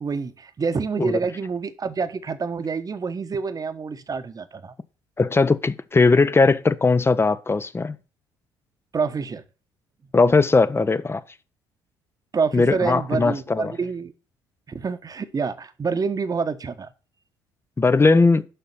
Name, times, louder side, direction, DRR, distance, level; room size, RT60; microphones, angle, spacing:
voice 1, 0.0-4.7 8.9-9.4 12.3-14.1 14.7-16.9, right 5 dB, 35° right, 1.1 m, -27 dB
voice 2, 5.2-8.0 10.1-11.2 12.5-13.7 17.8-18.4, left 3 dB, 20° left, 0.8 m, -19 dB
6.8 x 5.6 x 7.2 m
hypercardioid pair, 60°, 11 cm